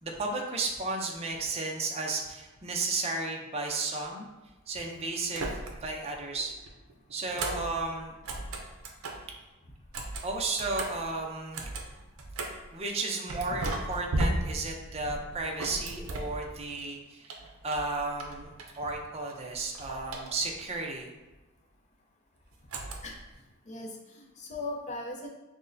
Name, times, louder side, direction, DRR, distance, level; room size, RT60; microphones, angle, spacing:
voice 1, 0.0-4.3 4.7-6.5 7.1-8.1 10.2-11.6 12.7-17.3 17.6-21.1, right 3 dB, 30° right, 0 dB, 0.5 m, -33 dB
sound 1, 5.3-6.0 6.3-9.3 9.8-12.7 13.3-16.9 17.2-19.0 19.3-20.7 22.7-23.3, right 2 dB, 75° right, 0.5 m, -36 dB
voice 2, 23.7-25.3, left 2 dB, 35° left, 0 dB, 0.5 m, -39 dB
6.0 x 2.1 x 2.6 m, 1.1 s
head